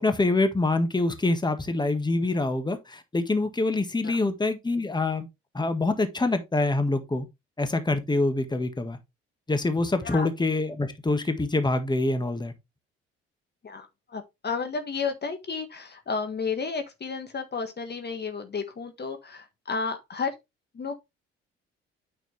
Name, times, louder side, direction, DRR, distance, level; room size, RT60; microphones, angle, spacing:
voice 1, 0.0-5.3 5.5-7.2 7.6-9.0 9.5-12.5, left 2 dB, 15° left, 1.7 m, -25 dB
voice 2, 13.6-20.4 20.7-21.0, left 5 dB, 35° left, 1.6 m, -32 dB
9.1 x 6.1 x 3.3 m
hypercardioid pair, 50°, 31 cm